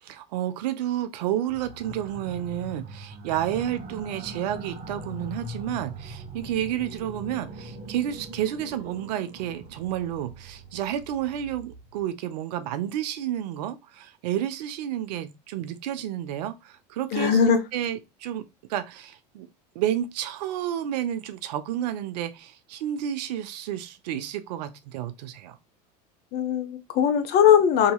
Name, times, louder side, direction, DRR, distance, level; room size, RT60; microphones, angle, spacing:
voice 1, 0.0-17.4 17.7-18.4 18.7-19.5 19.7-25.6, right 11 dB, 75° right, 0.5 m, -30 dB
sound 1, 1.5-12.0, right 1 dB, 40° right, 0.9 m, -41 dB
voice 2, 17.1-17.6 26.3-27.9, left 8 dB, 50° left, 0.7 m, -20 dB
2.8 x 2.7 x 2.2 m
hypercardioid pair, 90°, 21 cm